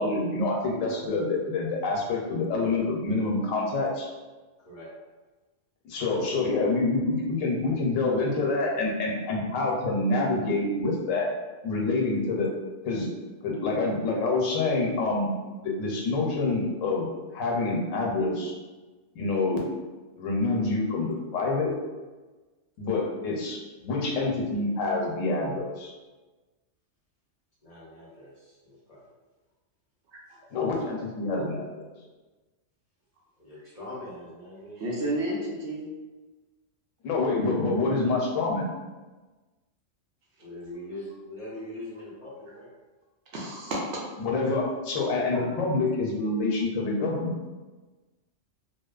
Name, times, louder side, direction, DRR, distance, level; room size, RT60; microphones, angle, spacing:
voice 1, 0.0-4.1 5.8-11.3 11.6-12.5 12.8-13.1 13.4-15.3 15.6-17.1 17.3-18.5 19.1-19.6 20.2-21.7 22.8-25.9 30.5-31.7 37.0-38.7 44.2-47.3, left 3 dB, 80° left, -1 dB, 1.0 m, -27 dB
voice 2, 27.6-29.1 33.4-34.8 40.4-42.7, left 1 dB, 40° left, -8 dB, 0.6 m, -42 dB
voice 3, 34.8-35.9 43.3-43.8 45.3-45.4, right 1 dB, 70° right, -4 dB, 0.9 m, -31 dB
2.7 x 2.0 x 2.3 m, 1.2 s
omnidirectional pair, 1.3 m